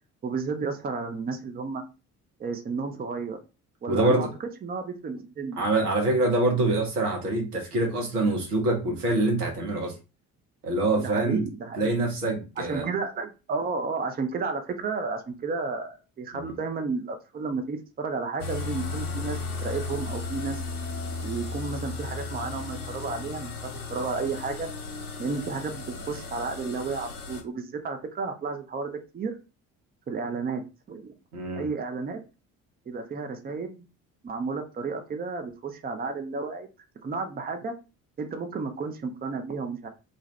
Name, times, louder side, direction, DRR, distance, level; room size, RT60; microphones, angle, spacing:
voice 1, 0.2-1.8 2.4-3.4 3.8-4.3 4.6-5.7 11.0-11.9 12.6-20.6 21.2-24.7 25.2-29.3 30.1-30.6 30.9-31.1 31.6-32.2 32.9-33.8 34.2-36.7 37.0-37.7 38.2-39.9, right 4 dB, 20° right, 6 dB, 0.6 m, -32 dB
voice 2, 3.9-4.3 5.6-10.0 10.6-11.4 11.8-12.8 16.3-16.6 31.3-31.7, right 2 dB, 85° right, 1 dB, 0.9 m, -25 dB
sound 1, 18.4-27.4, left 3 dB, 90° left, 0.7 m, -35 dB
2.6 x 2.4 x 3.2 m, 0.30 s
figure-of-eight pair, 50°, 44 cm